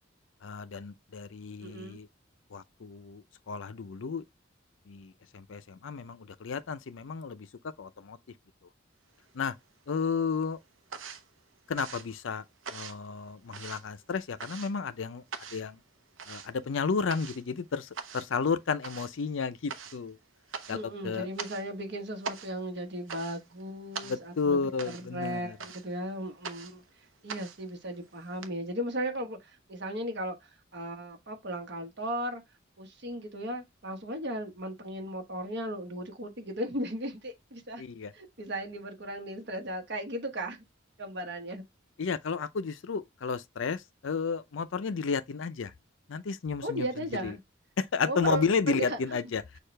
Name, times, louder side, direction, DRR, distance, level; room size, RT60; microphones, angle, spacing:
voice 1, 0.4-2.1 2.5-4.2 4.9-8.2 9.3-9.6 9.9-10.6 11.7-12.4 12.7-15.2 15.5-15.8 16.3-20.2 20.7-21.3 24.0-25.6 37.8-38.1 42.0-45.7 46.1-46.9 47.2-47.4 47.8-49.4, left 5 dB, 80° left, 0.5 m, -32 dB
voice 2, 1.6-2.0 20.7-26.8 27.2-32.4 32.8-37.8 38.1-40.6 41.0-41.6 46.6-47.4 48.1-49.2, right 1 dB, 60° right, 1.2 m, -36 dB
sound 1, 9.1-9.9 10.2-28.5, right 5 dB, 90° right, 0.7 m, -44 dB
6.5 x 2.4 x 3.2 m
head